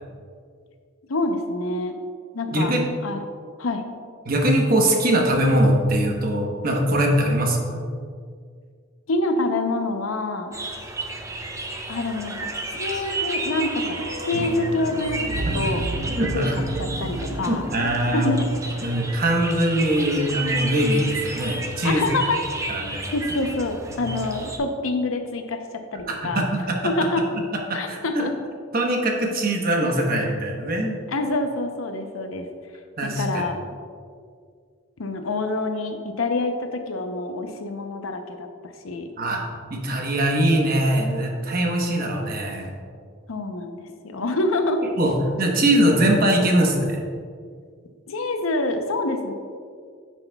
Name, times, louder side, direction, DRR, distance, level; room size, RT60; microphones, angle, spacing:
voice 1, 1.1-2.0 2.3-2.7 3.0-3.2 3.6-3.8 9.1-10.5 11.9-15.9 16.3-17.7 18.1-18.5 21.8-22.8 23.1-26.4 26.8-27.3 27.7-28.3 31.1-32.5 33.0-33.6 35.0-39.1 43.3-44.8 48.1-49.3, left 2 dB, 80° left, 6 dB, 0.7 m, -26 dB
voice 2, 2.5-2.8 4.2-7.8 16.1-16.6 17.5-18.4 18.8-22.1 22.7-23.0 23.9-24.2 26.1-26.8 27.7-28.3 28.7-31.0 33.0-33.4 39.2-39.4 39.7-42.7 45.0-47.0, right 1 dB, 45° right, 1 dB, 1.0 m, -22 dB
sound 1, 10.5-24.6, right 2 dB, 15° right, 0.5 m, -32 dB
sound 2, 12.6-20.8 21.0-21.1, right 1 dB, 70° right, 0.7 m, -33 dB
9.8 x 6.2 x 2.3 m, 2.1 s
head